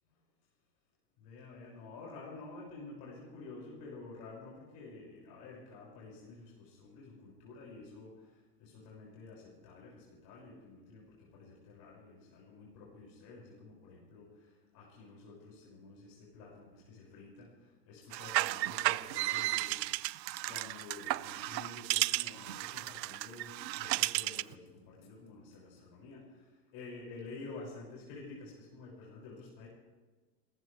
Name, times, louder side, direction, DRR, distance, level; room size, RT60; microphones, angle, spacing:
voice 1, 1.2-8.3 8.6-14.4 14.7-17.5 17.9-19.9 20.5-23.5 23.8-26.4 26.7-29.7, left 3 dB, 50° left, -4 dB, 6.3 m, -50 dB
sound 1, 18.0-25.9, left 10 dB, 65° left, 4.6 m, -70 dB
sound 2, 18.1-24.5, right 18 dB, 90° right, 0.5 m, -34 dB
28.5 x 15.0 x 3.4 m, 1.3 s
supercardioid pair, 120°, 50 cm